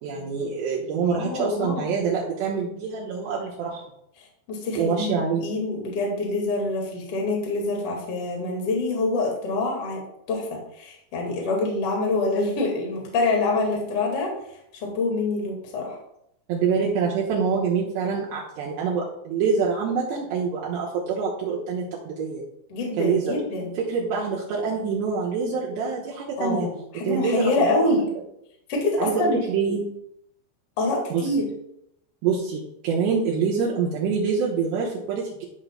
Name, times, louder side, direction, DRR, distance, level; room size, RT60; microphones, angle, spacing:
voice 1, 0.0-3.8 4.8-5.5 16.5-22.4 23.0-23.4 23.9-26.7 27.1-28.0 29.0-29.8 31.1-31.2 32.2-35.5, right 5 dB, 75° right, -5 dB, 3.1 m, -25 dB
voice 2, 1.1-1.9 4.5-5.1 5.4-10.0 10.3-14.3 14.8-16.0 22.7-23.7 26.4-28.0 28.7-29.4 30.8-31.4, left 2 dB, 45° left, -1 dB, 2.1 m, -26 dB
13.0 x 5.8 x 2.3 m, 0.76 s
omnidirectional pair, 5.2 m